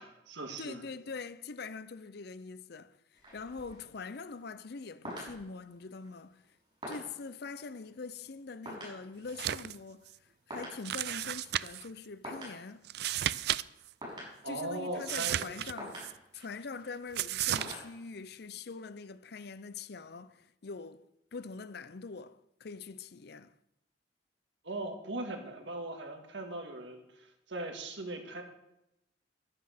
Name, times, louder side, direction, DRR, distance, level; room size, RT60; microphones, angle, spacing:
voice 1, 0.0-0.8 14.4-15.6 24.6-28.4, right 2 dB, 75° right, 2.0 m, -39 dB
voice 2, 0.6-6.4 6.9-12.9 14.5-16.1 16.3-21.1 21.3-23.5, left 4 dB, 60° left, 0.6 m, -44 dB
sound 1, 3.1-18.4, equal, 25° right, 6.2 m, -49 dB
sound 2, 9.3-9.8 10.1-10.2 10.8-11.9 12.8-13.6 13.9-14.0 15.0-16.1 17.1-17.7, right 12 dB, 60° right, 0.4 m, -33 dB
11.5 x 9.7 x 6.5 m
head